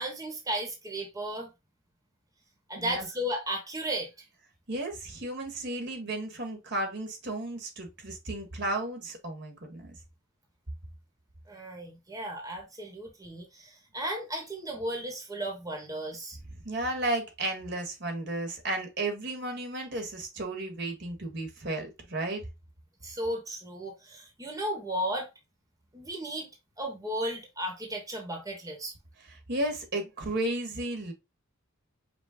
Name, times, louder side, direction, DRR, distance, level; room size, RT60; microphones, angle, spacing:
voice 1, 0.0-1.5 2.7-4.3 11.5-16.4 23.0-25.3 25.9-26.5 26.8-28.9, right 1 dB, 15° right, 1.1 m, -35 dB
voice 2, 2.8-3.1 4.7-9.9 16.6-22.4 29.5-31.1, right 2 dB, 55° right, 1.4 m, -33 dB
5.3 x 2.3 x 3.6 m
head